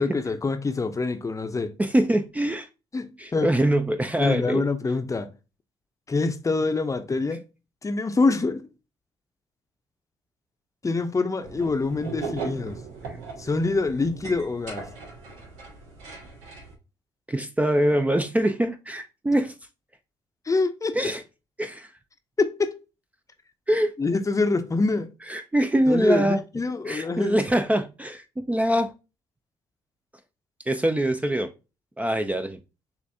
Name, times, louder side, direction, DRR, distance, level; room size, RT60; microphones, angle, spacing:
voice 1, 0.0-1.7 2.9-3.5 4.2-5.3 6.1-7.4 7.8-8.6 10.8-12.8 13.4-14.8 20.5-21.0 22.4-22.8 24.0-25.1 25.9-27.4, left 3 dB, 25° left, 0.6 m, -25 dB
voice 2, 1.8-2.7 3.2-4.7 13.0-13.2 17.3-19.5 20.9-21.2 21.6-21.9 23.7-23.9 25.3-26.4 26.9-28.9 30.7-31.5 32.0-32.6, right 1 dB, 10° right, 0.4 m, -24 dB
sound 1, 11.4-16.7, right 4 dB, 80° right, 1.4 m, -38 dB
6.6 x 2.5 x 2.7 m
supercardioid pair, 60°, 12 cm